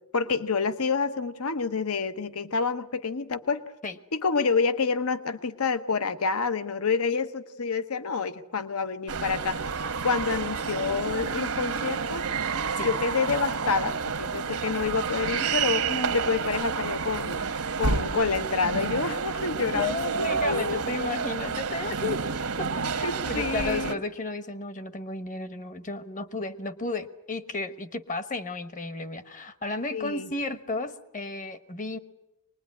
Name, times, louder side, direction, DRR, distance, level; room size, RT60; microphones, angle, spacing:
voice 1, 0.1-3.6 4.1-9.6 10.0-12.3 12.8-17.4 17.8-20.8 23.0-24.0 29.9-30.3, left 5 dB, 70° left, 12 dB, 0.9 m, -28 dB
sound 1, 9.1-23.9, right 5 dB, 70° right, 1.2 m, -29 dB
voice 2, 15.9-16.2 19.7-22.2 22.6-32.0, left 3 dB, 35° left, 12 dB, 1.1 m, -33 dB
24.0 x 20.5 x 9.6 m, 0.93 s
head